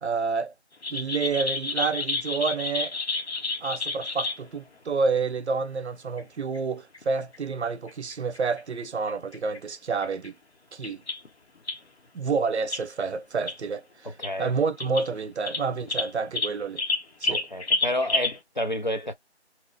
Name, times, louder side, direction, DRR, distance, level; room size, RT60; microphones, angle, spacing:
voice 1, 0.0-0.5 0.9-2.9 3.6-10.4 10.7-11.0 12.1-14.1 14.4-16.8 17.2-17.4, right 5 dB, 70° right, 0.6 m, -29 dB
sound 1, 0.8-4.4 5.6-5.7 6.2-6.3 6.5-6.6 6.9-7.0 7.3-7.4 7.9-8.6 9.1-9.6 9.9-10.3 10.8-11.3 11.7-11.8 12.7-12.8 13.5-13.6 14.1-14.3 14.8-15.1 15.5-18.4, left 3 dB, 65° left, 0.9 m, -29 dB
voice 2, 14.2-14.5 17.3-19.1, left 1 dB, 45° left, 0.5 m, -30 dB
2.8 x 2.0 x 2.5 m
figure-of-eight pair, 175°, 34 cm